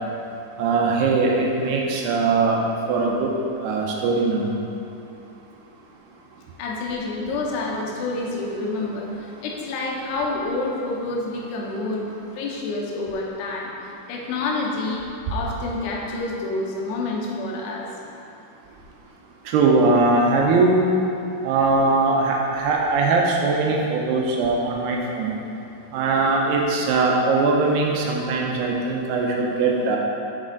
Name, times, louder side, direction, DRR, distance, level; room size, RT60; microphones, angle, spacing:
voice 1, 0.6-2.6 2.9-3.3 3.6-4.5 19.5-20.8 21.4-25.3 25.9-30.0, right 3 dB, 85° right, -1 dB, 2.7 m, -20 dB
voice 2, 6.6-9.1 9.4-12.0 12.4-13.7 14.1-15.0 15.3-17.9, left 2 dB, 85° left, -2 dB, 2.9 m, -28 dB
6.4 x 6.2 x 3.8 m, 2.6 s
omnidirectional pair, 4.8 m